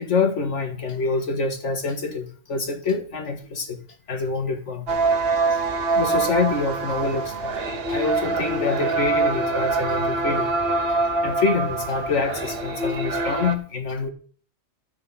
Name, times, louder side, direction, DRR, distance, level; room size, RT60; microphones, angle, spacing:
voice 1, 0.0-3.8 4.1-4.9 5.9-7.6 7.9-10.8 11.2-14.1, left 4 dB, 85° left, 2.0 m, -26 dB
sound 1, 4.9-13.6, right 3 dB, 55° right, 1.4 m, -24 dB
12.0 x 6.4 x 5.6 m
omnidirectional pair, 1.2 m